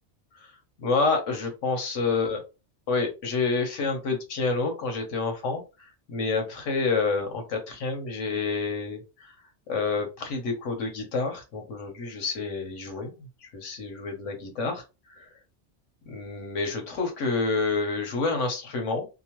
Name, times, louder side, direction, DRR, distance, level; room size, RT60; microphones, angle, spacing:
voice 1, 0.8-2.4 2.9-5.6 6.1-9.3 9.7-14.8 15.2-15.3 16.1-19.1, left 4 dB, 85° left, 4 dB, 1.2 m, -28 dB
2.9 x 2.1 x 2.9 m, 0.28 s
omnidirectional pair, 1.2 m